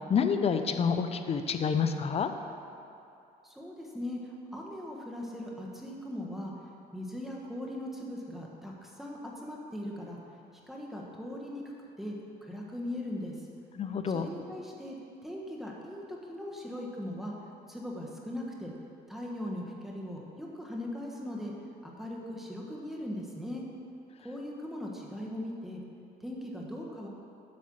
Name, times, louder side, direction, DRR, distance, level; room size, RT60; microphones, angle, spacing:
voice 1, 0.1-2.3 13.8-14.3, left 6 dB, 35° left, 8 dB, 0.6 m, -28 dB
voice 2, 3.4-6.5 6.9-10.2 10.7-11.6 12.0-12.1 12.4-13.5 14.1-15.0 15.2-17.3 17.7-18.7 19.1-21.5 21.8-23.6 24.2-25.8 26.2-27.1, left 1 dB, ahead, -3 dB, 1.3 m, -39 dB
8.4 x 5.5 x 6.4 m, 2.6 s
cardioid pair, 110°, 17 cm